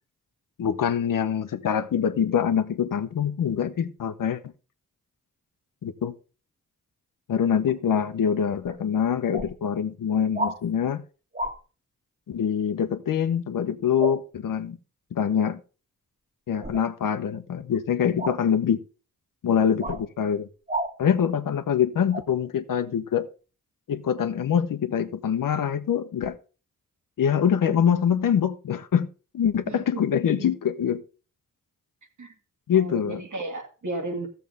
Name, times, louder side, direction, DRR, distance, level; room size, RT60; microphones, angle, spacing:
voice 1, 0.6-4.4 5.8-6.1 7.3-11.0 12.3-14.8 15.1-15.6 16.5-18.8 19.4-20.5 21.0-23.3 23.9-26.4 27.2-29.1 29.3-31.0 32.7-33.2, left 8 dB, 80° left, 0.9 m, -24 dB
sound 1, 8.6-8.8 9.3-9.5 10.3-10.6 11.3-11.6 14.0-14.2 16.6-16.8 18.2-18.4 19.8-20.0 20.7-20.9 22.1-22.2, right 1 dB, 25° right, 1.7 m, -30 dB
voice 2, 29.7-30.5 32.2-32.3 32.7-34.3, right 2 dB, 65° right, 2.5 m, -34 dB
14.5 x 6.9 x 3.5 m
cardioid pair, 50°, 32 cm